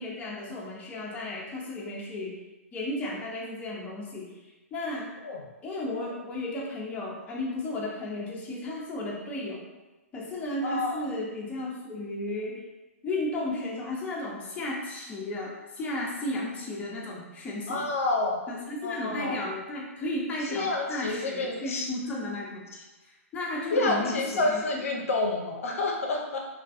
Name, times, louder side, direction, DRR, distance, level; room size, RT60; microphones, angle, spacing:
voice 1, 0.0-2.3 2.7-4.3 4.7-5.2 5.6-9.6 10.1-12.6 13.0-17.8 18.5-22.6 23.0-25.1, left 1 dB, 15° left, -4 dB, 0.5 m, -34 dB
voice 2, 10.6-11.0 17.7-18.4 18.8-19.4 20.5-21.9 23.7-26.4, left 2 dB, 70° left, 0 dB, 0.5 m, -28 dB
2.3 x 2.3 x 2.4 m, 1.1 s
hypercardioid pair, 125°, 8 cm